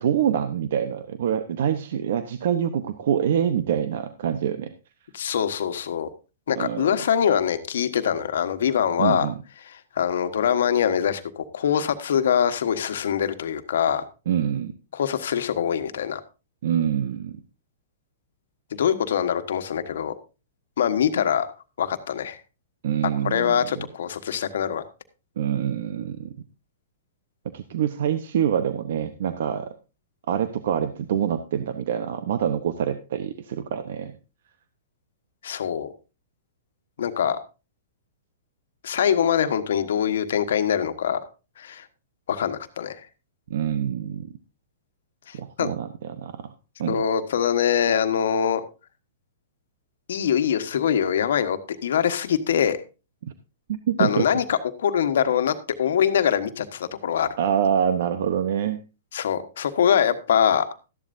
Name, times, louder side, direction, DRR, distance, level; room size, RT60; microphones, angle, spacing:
voice 1, 0.0-4.7 6.6-6.9 9.0-9.4 14.3-14.7 16.6-17.4 22.8-23.6 25.4-26.3 27.5-29.7 30.3-34.2 43.5-44.3 45.3-46.5 46.8-47.0 53.2-53.3 53.7-54.3 57.4-58.8, right 9 dB, 65° right, 11 dB, 0.9 m, -25 dB
voice 2, 5.1-6.1 6.5-9.3 9.9-14.0 14.9-16.2 18.7-20.1 20.8-21.5 21.8-22.4 23.2-24.8 35.4-35.9 37.0-37.4 38.8-41.2 41.6-41.8 42.3-43.0 45.3-45.7 46.9-48.6 50.1-52.8 54.0-57.3 59.1-60.7, left 8 dB, 75° left, 9 dB, 1.3 m, -23 dB
13.5 x 11.0 x 2.7 m, 0.31 s
hypercardioid pair, 140°, 0 cm